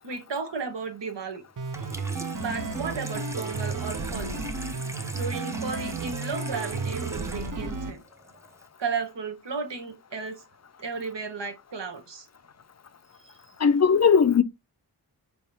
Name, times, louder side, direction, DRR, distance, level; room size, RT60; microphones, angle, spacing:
voice 1, 0.0-1.4 2.3-4.4 5.1-8.0 8.8-10.4 10.8-12.3 13.2-13.3, right 4 dB, 85° right, 1.1 m, -34 dB
Water tap faucet / Sink (filling or washing), 1.6-8.6, right 1 dB, 5° right, 0.6 m, -42 dB
sound 1, 1.6-7.9, right 4 dB, 50° right, 0.7 m, -32 dB
voice 2, 13.6-14.4, left 6 dB, 40° left, 0.4 m, -18 dB
4.8 x 3.4 x 2.7 m
wide cardioid pair, 55°, 42 cm